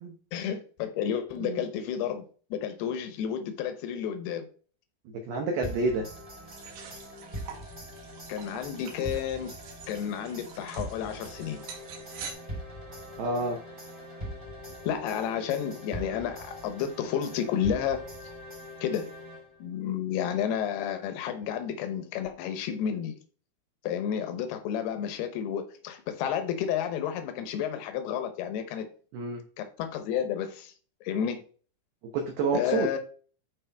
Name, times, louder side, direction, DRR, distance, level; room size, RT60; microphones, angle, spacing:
voice 1, 0.3-2.2 2.5-4.4 8.3-9.5 9.9-11.6 14.8-18.0 18.8-19.1 19.6-23.2 23.8-28.9 29.6-30.7 31.0-31.4 32.5-33.0, left 8 dB, 80° left, 7 dB, 2.3 m, -31 dB
voice 2, 5.3-6.1 13.2-13.6 29.1-29.4 32.1-32.9, right 3 dB, 85° right, 3 dB, 2.1 m, -28 dB
sound 1, 5.6-19.7, equal, 25° right, 1.1 m, -42 dB
sound 2, 6.4-12.3, right 6 dB, 65° right, 2.9 m, -46 dB
11.5 x 4.7 x 3.5 m, 0.41 s
omnidirectional pair, 6.0 m